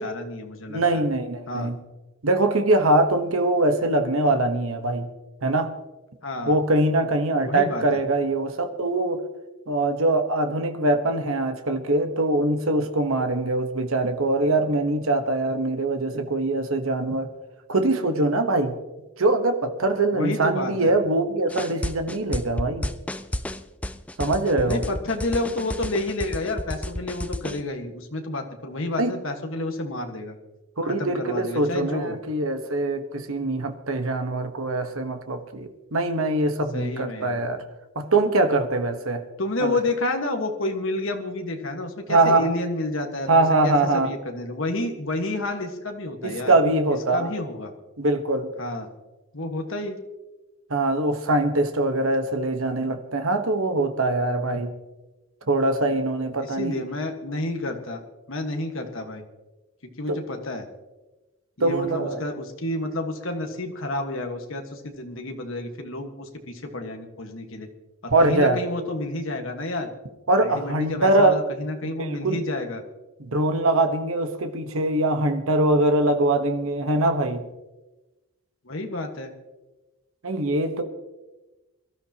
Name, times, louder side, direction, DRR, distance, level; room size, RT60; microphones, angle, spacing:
voice 1, 0.0-1.0 1.5-1.7 6.2-6.6 7.4-8.0 20.1-20.9 24.7-30.4 30.9-32.2 36.7-37.4 39.4-46.5 47.1-47.7 48.6-48.9 49.3-50.0 56.4-58.0 58.3-59.2 60.0-60.7 61.6-67.7 68.0-69.9 70.4-72.8 78.6-79.3, left 2 dB, 60° left, 4 dB, 1.5 m, -30 dB
voice 2, 0.7-1.8 2.2-5.1 5.4-5.7 6.5-9.2 9.7-17.3 17.7-18.8 19.2-22.9 24.2-24.8 29.0-29.1 30.8-37.6 37.9-39.2 39.6-39.8 42.1-42.5 43.3-44.1 46.2-47.3 48.0-48.5 50.7-54.7 55.5-56.8 60.1-60.2 61.6-62.2 68.1-68.6 70.3-71.4 71.8-72.4 73.2-77.4 80.2-80.8, right 2 dB, 70° right, 7 dB, 1.2 m, -23 dB
sound 1, 21.5-27.6, left 1 dB, 5° left, 0.4 m, -31 dB
23.5 x 12.5 x 2.9 m, 1.1 s
head